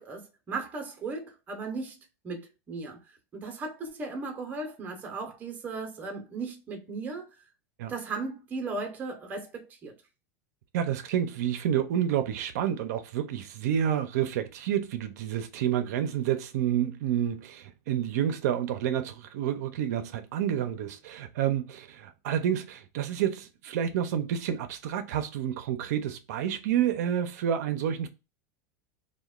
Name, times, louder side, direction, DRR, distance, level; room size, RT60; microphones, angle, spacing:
voice 1, 0.0-2.0 2.2-3.0 3.3-7.3 7.9-9.9, right 3 dB, 20° right, 0.6 m, -36 dB
voice 2, 10.7-28.1, right 10 dB, 70° right, 0.4 m, -29 dB
2.8 x 2.1 x 2.3 m
supercardioid pair, 160°, 9 cm